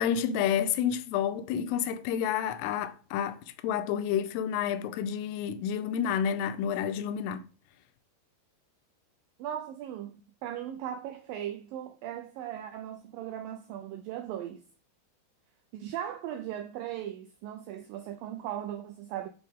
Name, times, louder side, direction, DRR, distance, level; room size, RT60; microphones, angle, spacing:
voice 1, 0.0-7.4, left 8 dB, 85° left, 2.8 m, -29 dB
voice 2, 9.4-14.6 15.7-19.3, right 11 dB, 85° right, 2.0 m, -38 dB
9.8 x 4.3 x 3.7 m
omnidirectional pair, 4.7 m